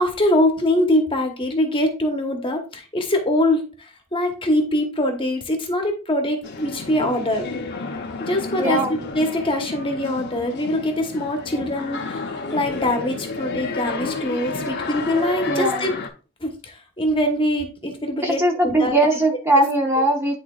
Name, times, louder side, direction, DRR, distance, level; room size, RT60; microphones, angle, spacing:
voice 1, 0.0-7.5 8.2-15.9 16.4-19.1, left 1 dB, 25° left, 4 dB, 1.1 m, -23 dB
sound 1, 6.4-16.1, left 3 dB, 50° left, 0.8 m, -31 dB
voice 2, 8.6-8.9 11.5-11.7 15.5-15.9 18.2-20.4, right 1 dB, 10° right, 1 dB, 0.8 m, -20 dB
10.5 x 3.9 x 2.3 m, 0.34 s
head